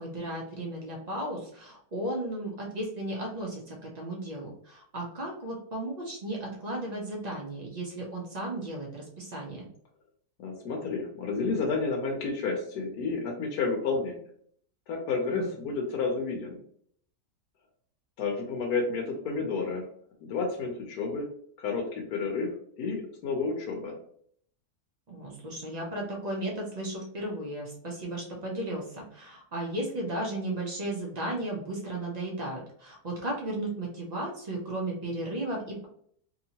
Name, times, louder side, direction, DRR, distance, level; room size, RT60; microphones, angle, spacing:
voice 1, 0.0-9.7 15.3-15.5 25.1-35.8, right 1 dB, 90° right, -2 dB, 0.3 m, -35 dB
voice 2, 10.4-14.2 14.9-16.6 18.2-19.9 20.2-21.3 21.6-22.5 22.8-23.9, left 4 dB, 75° left, 0 dB, 1.2 m, -30 dB
2.9 x 2.8 x 2.7 m, 0.63 s
omnidirectional pair, 1.7 m